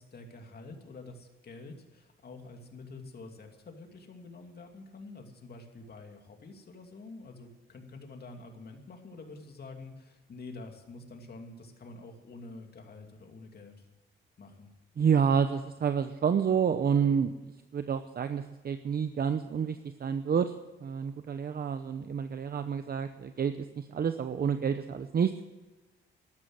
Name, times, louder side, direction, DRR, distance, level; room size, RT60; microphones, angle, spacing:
voice 1, 0.0-13.9 14.4-14.7, left 3 dB, 50° left, 4 dB, 2.7 m, -47 dB
voice 2, 15.0-20.5 20.8-25.3, right 7 dB, 45° right, 9 dB, 0.8 m, -29 dB
13.0 x 12.5 x 7.8 m, 1.1 s
cardioid pair, 100°, 21 cm